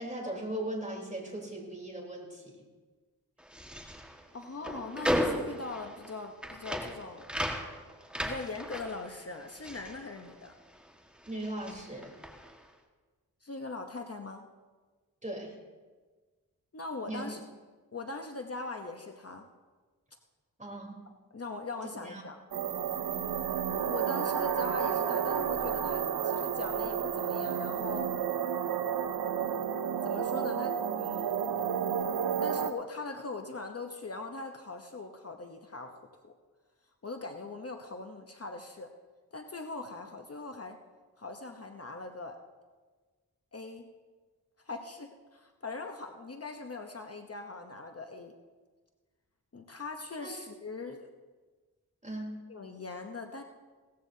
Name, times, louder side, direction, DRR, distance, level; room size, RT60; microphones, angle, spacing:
voice 1, 0.0-2.6 11.3-12.2 15.2-15.5 17.1-17.3 20.6-21.0 22.0-22.2 50.2-50.3 52.0-52.4, right 1 dB, 20° right, -1 dB, 3.7 m, -38 dB
sound 1, 3.4-10.9 11.1-12.6, equal, 5° right, 1.6 m, -36 dB
voice 2, 4.3-7.2 8.2-10.5 13.4-14.4 16.7-17.4 17.9-19.5 21.3-22.4 23.9-28.1 30.0-31.4 32.4-36.3 37.0-38.9 39.3-40.8 41.2-42.4 43.5-43.9 44.6-48.3 49.5-51.1 52.5-53.4, left 3 dB, 40° left, 4 dB, 0.9 m, -41 dB
sound 2, 22.5-32.7, right 8 dB, 80° right, 0.7 m, -31 dB
18.0 x 14.0 x 2.8 m, 1.4 s
cardioid pair, 60°, 37 cm